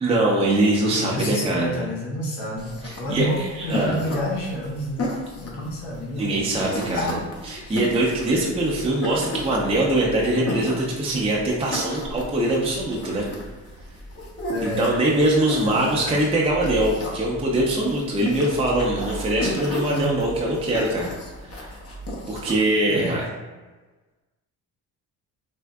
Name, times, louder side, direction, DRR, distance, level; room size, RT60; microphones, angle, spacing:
voice 1, 0.0-1.8 2.8-3.3 3.6-4.0 6.2-13.3 14.6-21.1 21.4-21.7 22.3-23.2, right 1 dB, 15° right, -3 dB, 0.6 m, -23 dB
voice 2, 0.9-5.0 5.4-7.3 7.6-7.8 14.5-15.0 15.6-16.3 19.9-20.1 22.9-23.2, equal, 90° left, -5 dB, 1.0 m, -30 dB
sound 1, 2.6-22.6, left 1 dB, 35° left, 0.8 m, -34 dB
3.5 x 2.5 x 2.2 m, 1.3 s
supercardioid pair, 80°, 40 cm